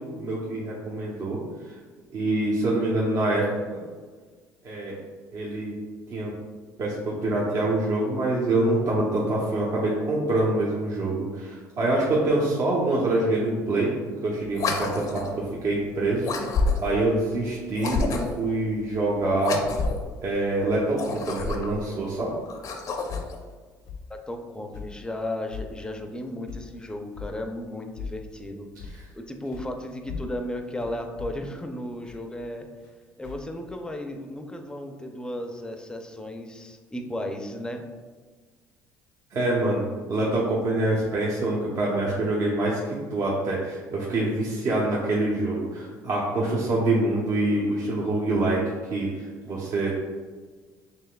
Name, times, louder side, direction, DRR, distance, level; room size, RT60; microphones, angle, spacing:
voice 1, 0.0-1.7 2.1-3.8 4.6-4.9 5.3-5.7 6.1-6.3 6.8-13.9 14.2-19.6 20.2-22.3 39.3-48.6 48.9-49.9, right 2 dB, 55° right, -5 dB, 0.9 m, -25 dB
sound 1, 14.5-15.4 16.2-17.0 17.7-18.5 19.4-20.1 20.9-21.8 22.5-23.4, left 3 dB, 55° left, 0.6 m, -28 dB
sound 2, 23.1-23.4 23.9-24.1 24.7-25.0 25.5-25.7 26.5-26.7 27.1-27.3 28.0-28.2 28.8-29.1 29.5-29.7 30.1-32.9 33.2-34.0, left 5 dB, 85° left, 0.9 m, -38 dB
voice 2, 24.1-32.7 33.2-37.8, left 1 dB, 10° left, 4 dB, 0.5 m, -35 dB
5.6 x 3.3 x 2.3 m, 1.5 s
supercardioid pair, 85°, 7 cm